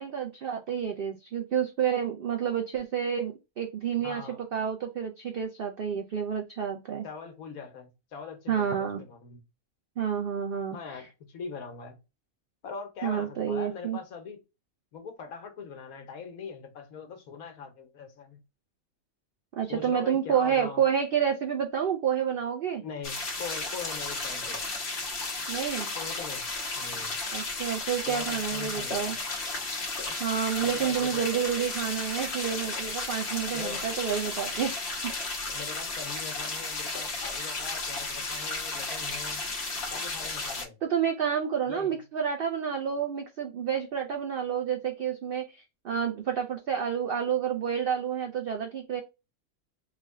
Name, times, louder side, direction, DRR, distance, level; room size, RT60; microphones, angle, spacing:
voice 1, 0.0-4.2 4.5-7.1 8.5-9.0 10.0-11.0 13.0-14.0 19.6-22.8 25.5-25.9 27.3-29.2 30.2-34.7 35.0-35.1 40.8-49.0, right 8 dB, 80° right, 0.5 m, -29 dB
voice 2, 4.0-4.4 7.0-9.4 10.7-12.0 12.6-14.4 14.9-18.4 19.6-20.8 22.8-24.6 26.0-26.4 26.8-27.2 28.1-29.1 30.0-30.2 30.6-31.3 33.5-33.9 35.5-39.4 39.9-40.8 41.7-41.9, left 5 dB, 75° left, 1.3 m, -42 dB
sound 1, 23.0-40.7, left 3 dB, 50° left, 1.0 m, -34 dB
3.3 x 2.2 x 3.5 m
omnidirectional pair, 1.5 m